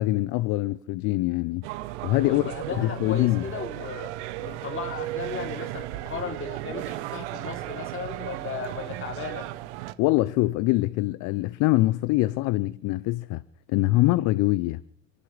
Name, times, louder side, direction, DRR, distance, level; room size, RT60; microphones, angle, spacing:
voice 1, 0.0-1.7 2.0-2.4 2.8-3.5 10.0-13.4 13.7-14.8, left 18 dB, 60° left, 0.7 m, -24 dB
sound 1, 1.6-9.9, right 16 dB, 75° right, 1.0 m, -35 dB
voice 2, 2.2-4.1 4.4-9.5, left 6 dB, 35° left, 3.4 m, -36 dB
30.0 x 11.5 x 3.4 m
hypercardioid pair, 70°, 35 cm